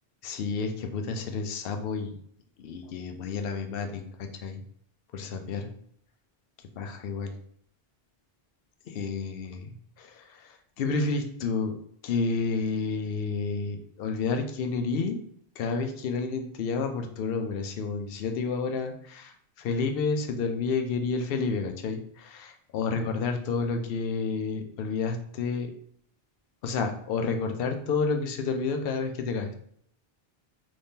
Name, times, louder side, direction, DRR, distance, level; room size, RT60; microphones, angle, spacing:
voice 1, 0.2-2.1 2.6-4.6 5.1-5.7 6.8-7.3 8.9-11.7 12.0-15.2 15.6-25.7 26.6-29.5, left 4 dB, 70° left, 5 dB, 0.7 m, -30 dB
3.5 x 3.2 x 2.7 m, 0.65 s
omnidirectional pair, 1.0 m